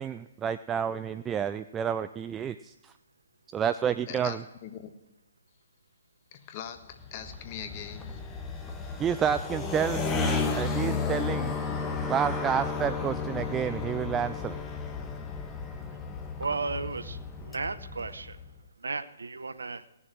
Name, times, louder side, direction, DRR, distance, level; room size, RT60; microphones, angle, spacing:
voice 1, 0.0-2.9 3.5-4.4 9.0-11.5 12.1-14.6, right 8 dB, 15° right, 12 dB, 0.3 m, -30 dB
voice 2, 4.1-4.9 6.3-8.2, left 9 dB, 35° left, 8 dB, 1.3 m, -42 dB
sound 1, 6.9-18.5, left 4 dB, 15° left, 1.1 m, -33 dB
voice 3, 16.4-18.4 18.8-19.8, right 4 dB, 80° right, 13 dB, 0.8 m, -34 dB
18.0 x 7.2 x 6.1 m, 0.98 s
hypercardioid pair, 135°, 0 cm